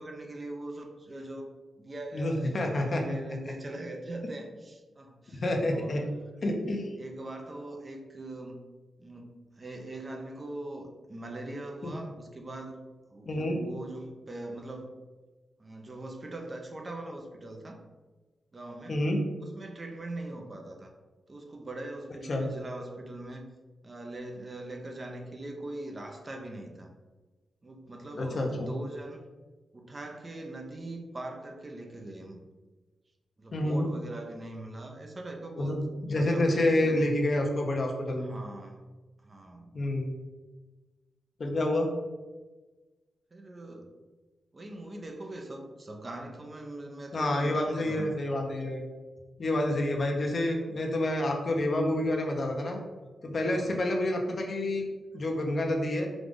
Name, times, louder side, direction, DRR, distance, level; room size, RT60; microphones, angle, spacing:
voice 1, 0.0-1.5 1.8-6.1 7.0-8.7 9.0-12.8 13.1-14.9 15.6-17.8 18.5-19.0 19.4-20.9 21.3-23.4 23.8-26.9 27.6-29.2 29.7-32.4 33.4-37.1 38.2-38.8 39.2-39.7 43.3-43.9 44.5-48.1 53.5-53.7, right 1 dB, 35° right, 3 dB, 0.7 m, -41 dB
voice 2, 2.1-3.0 5.3-6.0 6.4-6.9 11.8-11.9 13.3-13.6 18.9-19.2 22.3-22.5 28.1-28.7 33.5-33.9 35.6-38.4 39.7-40.1 41.4-41.9 47.1-48.8 49.4-52.8 53.2-54.9 55.1-56.1, left 1 dB, 50° left, 2 dB, 0.8 m, -28 dB
4.9 x 2.5 x 3.8 m, 1.3 s
cardioid pair, 80°, 0 cm